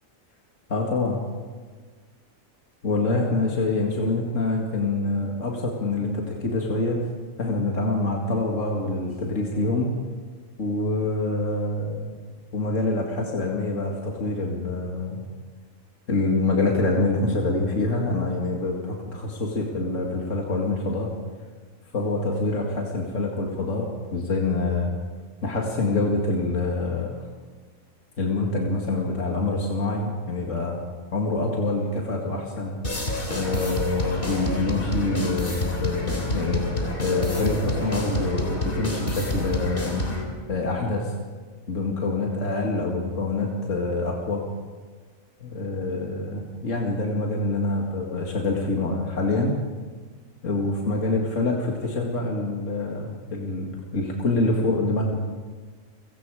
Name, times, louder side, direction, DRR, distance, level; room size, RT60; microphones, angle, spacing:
voice 1, 0.7-1.2 2.8-7.1 7.4-9.9 10.6-12.2 12.5-15.2 16.1-21.1 21.9-24.9 25.4-27.1 28.2-30.8 31.1-32.8 33.3-36.7 37.0-40.0 40.5-41.1 41.7-44.4 45.4-49.5 50.4-55.2, left 2 dB, 70° left, -1 dB, 2.5 m, -26 dB
sound 1, 32.8-40.2, left 1 dB, 40° left, 3.7 m, -28 dB
30.0 x 18.0 x 4.9 m, 1.5 s
omnidirectional pair, 1.4 m